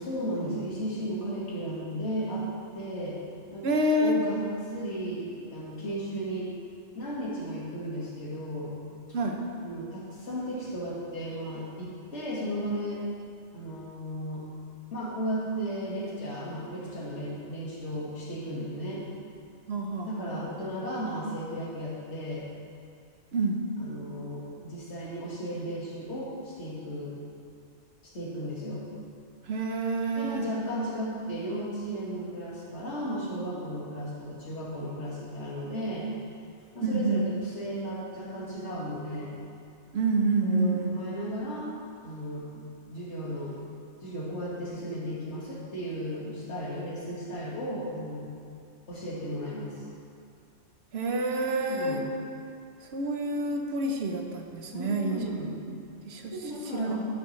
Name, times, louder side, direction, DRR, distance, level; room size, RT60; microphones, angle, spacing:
voice 1, 0.0-2.5 2.7-3.2 3.5-3.7 4.0-6.5 7.0-8.7 9.6-13.0 13.5-14.5 14.9-19.0 20.1-22.4 23.8-27.1 28.1-28.9 30.2-36.1 36.7-39.3 40.4-41.7 42.0-42.6 42.9-43.5 44.0-48.3 48.9-49.8 51.6-52.0 54.7-55.6 56.3-57.0, equal, 65° left, -6 dB, 2.0 m, -35 dB
voice 2, 3.6-4.2 9.1-9.4 19.7-20.3 23.3-23.6 29.4-30.5 36.8-37.2 39.9-40.9 50.9-52.1 52.9-55.2 55.7-55.8 56.1-56.3 56.7-57.0, right 2 dB, 60° right, 3 dB, 0.9 m, -28 dB
11.0 x 6.8 x 3.2 m, 2.4 s
omnidirectional pair, 1.3 m